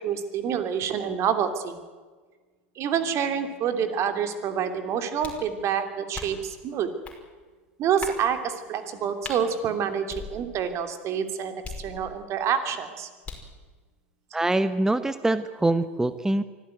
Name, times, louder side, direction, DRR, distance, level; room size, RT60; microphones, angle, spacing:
voice 1, 0.0-1.8 2.8-6.9 7.8-13.1, right 8 dB, 40° right, 8 dB, 3.0 m, -27 dB
sound 1, 5.2-5.5 6.1-6.5 7.0-7.2 8.0-8.3 9.2-9.4 10.1-10.7 11.6-12.3 13.2-13.6, left 4 dB, 15° left, 5.2 m, -39 dB
voice 2, 14.3-16.4, right 2 dB, 5° right, 13 dB, 1.0 m, -24 dB
24.5 x 15.5 x 9.4 m, 1.4 s
hypercardioid pair, 90°, 7 cm